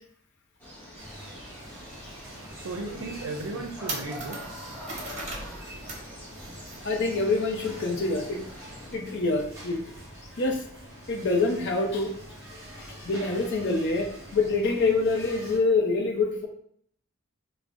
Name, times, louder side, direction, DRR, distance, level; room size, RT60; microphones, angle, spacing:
sound 1, 0.6-9.0, left 1 dB, 10° left, 0.9 m, -45 dB
sound 2, 1.0-15.6, equal, 15° right, 1.1 m, -45 dB
sound 3, 1.7-1.8 2.3-2.4 3.0-3.1 3.4-6.1 6.3-6.8, right 2 dB, 35° right, 0.8 m, -38 dB
voice 1, 2.5-4.7, right 3 dB, 90° right, 2 dB, 0.5 m, -36 dB
voice 2, 6.8-8.4 8.9-9.8 10.4-10.6 11.1-12.1 12.7-16.5, left 3 dB, 55° left, 2 dB, 0.6 m, -26 dB
4.7 x 2.0 x 2.5 m, 0.64 s
head